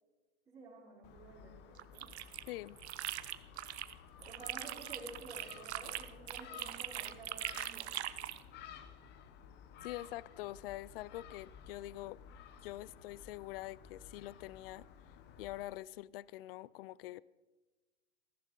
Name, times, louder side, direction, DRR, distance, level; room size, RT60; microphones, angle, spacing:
voice 1, 0.5-2.1 4.2-7.9, right 2 dB, 15° right, 5.7 m, -52 dB
Gull seagull, 1.0-15.6, left 8 dB, 30° left, 1.1 m, -55 dB
sound 1, 1.8-3.9 4.2-8.4, right 13 dB, 75° right, 0.9 m, -42 dB
voice 2, 2.5-2.8 9.8-12.2 12.6-14.9 15.4-17.2, left 16 dB, 60° left, 0.5 m, -45 dB
14.5 x 14.0 x 5.2 m
hypercardioid pair, 130°, 33 cm